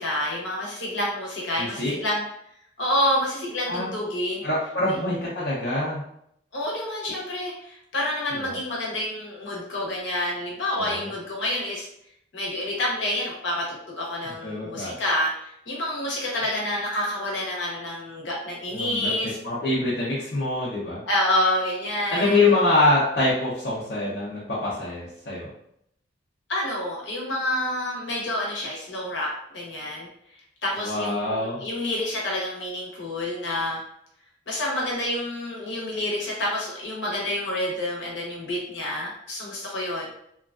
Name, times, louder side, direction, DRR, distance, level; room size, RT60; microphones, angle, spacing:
voice 1, 0.0-2.2 2.8-4.4 4.9-5.0 6.5-11.9 12.3-19.4 21.1-22.5 26.5-29.3 29.5-30.1 30.6-33.8 34.5-40.1, left 1 dB, 80° left, -4 dB, 1.0 m, -28 dB
voice 2, 1.6-1.9 3.7-3.9 4.4-6.0 8.3-8.5 10.8-11.1 14.4-15.0 18.7-19.1 19.4-21.0 22.1-25.5 30.7-31.6, left 2 dB, 60° left, -8 dB, 0.6 m, -25 dB
3.0 x 2.4 x 2.4 m, 0.73 s
head